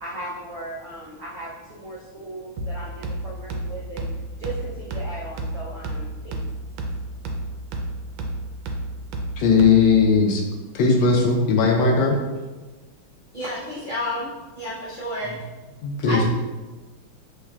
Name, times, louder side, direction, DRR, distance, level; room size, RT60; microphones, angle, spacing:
voice 1, 0.0-4.1 4.3-6.4, right 2 dB, 90° right, -6 dB, 0.6 m, -37 dB
sound 1, 2.6-10.1, right 1 dB, 75° right, 1.3 m, -32 dB
voice 2, 9.4-10.4 10.7-12.2 15.8-16.3, left 4 dB, 75° left, 1 dB, 1.2 m, -18 dB
voice 3, 13.3-14.3 14.5-15.3 16.0-16.3, left 1 dB, 45° right, -11 dB, 0.7 m, -29 dB
6.4 x 3.1 x 2.3 m, 1.2 s
omnidirectional pair, 2.3 m